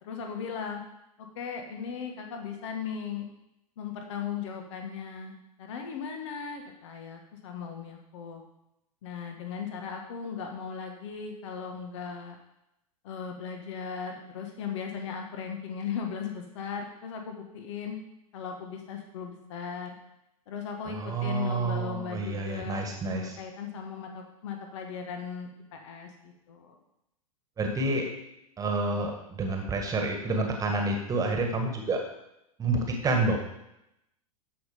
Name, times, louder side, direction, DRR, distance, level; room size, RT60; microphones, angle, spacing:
voice 1, 0.0-0.8 1.4-3.3 3.8-8.4 9.0-12.4 13.0-18.0 18.3-19.9 20.5-26.8, left 6 dB, 55° left, 3 dB, 1.6 m, -37 dB
voice 2, 20.9-23.4 27.6-28.1 28.6-32.0 32.6-33.4, right 2 dB, 20° right, 3 dB, 1.7 m, -29 dB
14.0 x 5.8 x 5.1 m, 0.84 s
figure-of-eight pair, 95°, 19 cm